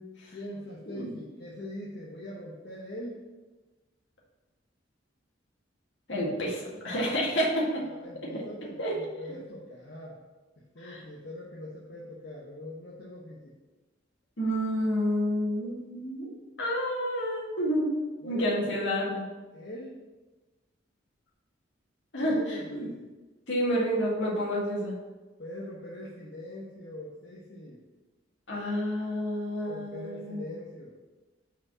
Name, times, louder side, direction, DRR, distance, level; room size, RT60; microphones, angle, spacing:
voice 1, 0.3-3.3 7.8-10.2 10.6-13.5 18.2-19.1 19.5-20.0 22.2-23.1 25.4-27.8 29.7-30.9, left 1 dB, 60° left, -5 dB, 1.1 m, -42 dB
voice 2, 6.1-7.8 8.3-8.4 8.8-8.9 10.8-11.0 14.4-16.3 16.6-17.9 18.2-19.2 22.1-22.8 23.5-25.0 28.5-30.5, equal, 75° left, -4 dB, 2.0 m, -29 dB
5.2 x 4.9 x 6.2 m, 1.2 s
head